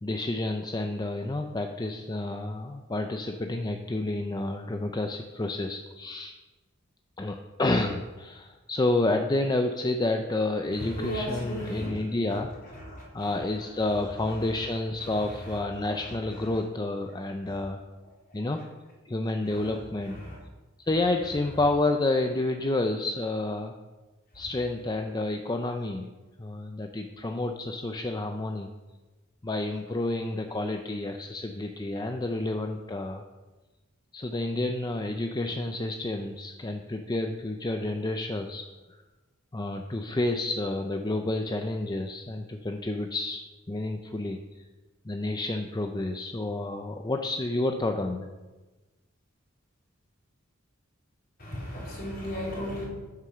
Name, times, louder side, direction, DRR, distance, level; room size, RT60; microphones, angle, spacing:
voice 1, 0.0-6.4 7.2-12.5 13.1-17.8 18.3-18.6 19.0-20.2 20.8-23.7 24.3-26.1 26.4-28.7 29.4-33.2 34.1-38.6 39.5-43.4 43.7-44.6 45.0-48.3, left 2 dB, 20° left, 5 dB, 0.5 m, -29 dB
voice 2, 10.7-11.9 12.3-12.4 12.7-13.3 15.1-15.2 16.3-16.4 19.5-19.8 20.0-20.4 51.4-52.8, equal, 45° left, -4 dB, 3.9 m, -36 dB
9.3 x 7.5 x 5.7 m, 1.2 s
head